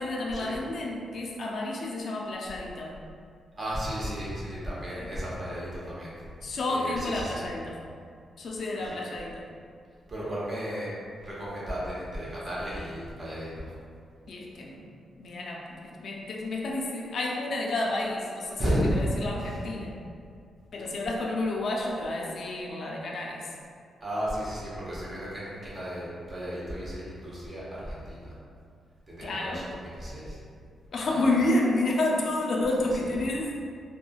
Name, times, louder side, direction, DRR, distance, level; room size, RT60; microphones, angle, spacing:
voice 1, 0.0-3.0 4.9-5.2 6.4-7.8 8.4-9.5 14.3-14.8 15.2-20.0 20.7-23.5 29.2-29.7 30.9-33.5, left 2 dB, 60° left, -2 dB, 0.3 m, -30 dB
voice 2, 3.6-6.2 6.7-7.5 8.8-9.0 10.1-10.9 11.2-13.7 18.6-19.1 19.4-19.6 24.0-28.3 29.1-29.7 30.0-30.4 31.0-31.5 32.8-33.1, equal, 30° right, -7 dB, 0.8 m, -34 dB
3.1 x 2.2 x 2.3 m, 2.3 s
cardioid pair, 120°, 0 cm